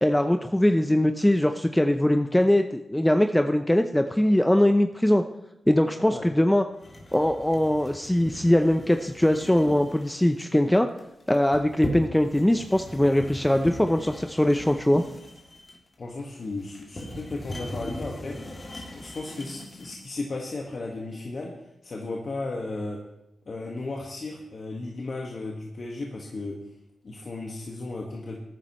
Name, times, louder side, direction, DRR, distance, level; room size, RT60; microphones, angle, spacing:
voice 1, 0.0-5.2 5.7-6.6 7.1-10.9 11.3-15.0, left 1 dB, 10° left, 7 dB, 0.7 m, -21 dB
sound 1, 6.8-20.1, left 1 dB, 40° left, 2.8 m, -39 dB
voice 2, 16.0-21.5 21.8-23.0 23.4-26.6 27.0-28.4, left 2 dB, 60° left, -1 dB, 1.7 m, -35 dB
18.0 x 9.8 x 3.2 m, 0.87 s
cardioid pair, 45°, 0 cm